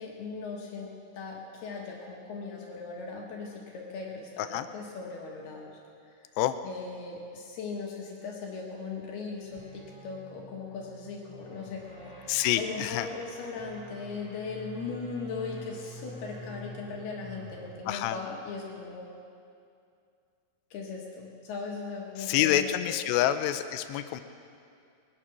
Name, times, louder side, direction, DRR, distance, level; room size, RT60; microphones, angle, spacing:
voice 1, 0.0-5.8 6.6-19.1 20.7-23.0, left 4 dB, 70° left, -1 dB, 3.3 m, -39 dB
sound 1, 9.4-17.9, equal, 10° right, 2.4 m, -47 dB
voice 2, 12.3-13.1 17.9-18.2 22.2-24.2, left 12 dB, 90° left, 10 dB, 2.8 m, -27 dB
21.5 x 10.0 x 6.0 m, 2.4 s
omnidirectional pair, 4.9 m